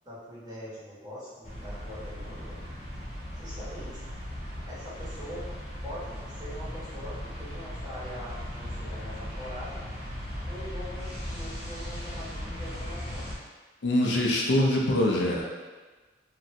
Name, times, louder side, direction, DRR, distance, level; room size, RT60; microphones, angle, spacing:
voice 1, 0.0-2.6 3.3-4.0 4.6-5.4 5.8-9.8 10.4-13.3, equal, 20° right, -11 dB, 1.1 m, -43 dB
sound 1, 1.4-13.4, equal, 35° left, 0.9 m, -38 dB
voice 2, 13.8-15.4, left 1 dB, 70° left, -2 dB, 0.5 m, -24 dB
2.9 x 2.5 x 2.6 m, 1.3 s
head